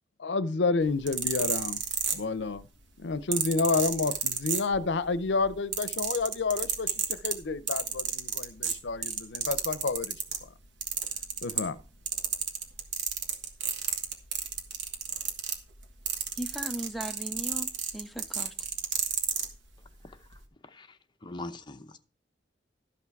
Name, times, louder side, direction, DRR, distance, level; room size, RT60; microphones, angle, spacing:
voice 1, 0.2-1.8 2.1-2.6 3.0-10.2 11.4-11.8, left 4 dB, 70° left, 0.6 m, -29 dB
sound 1, 0.9-2.6 3.3-5.1 5.4-10.4 10.8-11.8 12.1-19.5 20.2-20.4, right 7 dB, 75° right, 1.5 m, -31 dB
voice 2, 16.4-18.5, equal, ahead, 0.5 m, -37 dB
voice 3, 20.0-22.0, left 2 dB, 25° left, 0.8 m, -44 dB
12.5 x 6.0 x 4.6 m
head